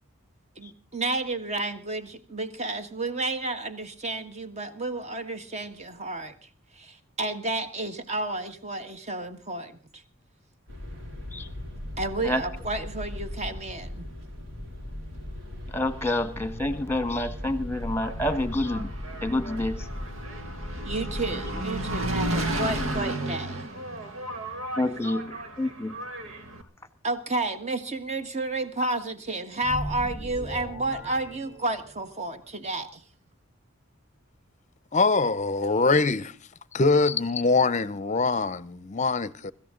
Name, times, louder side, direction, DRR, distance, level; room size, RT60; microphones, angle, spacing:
voice 1, 0.6-6.3 6.7-10.0 12.0-14.1 20.8-23.6 27.0-33.0, right 2 dB, 35° right, 1.6 m, -31 dB
sound 1, 10.7-23.0, left 1 dB, 65° right, 4.2 m, -37 dB
voice 2, 15.7-18.9 19.2-19.8 24.8-25.9, left 1 dB, 10° left, 1.4 m, -28 dB
Engine, 17.8-26.6, right 1 dB, 85° right, 2.0 m, -34 dB
sound 2, 29.6-32.2, equal, 15° right, 2.7 m, -38 dB
voice 3, 34.9-36.3 36.7-39.5, left 3 dB, 35° left, 0.7 m, -23 dB
25.0 x 14.5 x 3.8 m
head